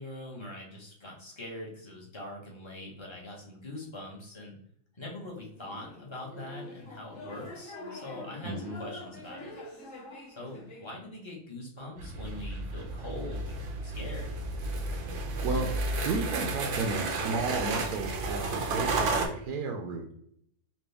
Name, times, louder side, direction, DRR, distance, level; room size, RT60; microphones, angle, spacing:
voice 1, 0.0-4.5 4.9-9.5 10.3-14.3, left 1 dB, 20° left, -3 dB, 1.1 m, -43 dB
sound 1, 5.6-10.9, left 2 dB, 55° left, 1.4 m, -45 dB
voice 2, 8.4-8.8 15.4-15.7 16.0-20.1, right 3 dB, 80° right, 2 dB, 1.2 m, -33 dB
sound 2, 12.0-19.3, right 3 dB, 60° right, 0.9 m, -32 dB
4.3 x 2.6 x 3.4 m, 0.68 s
omnidirectional pair, 1.7 m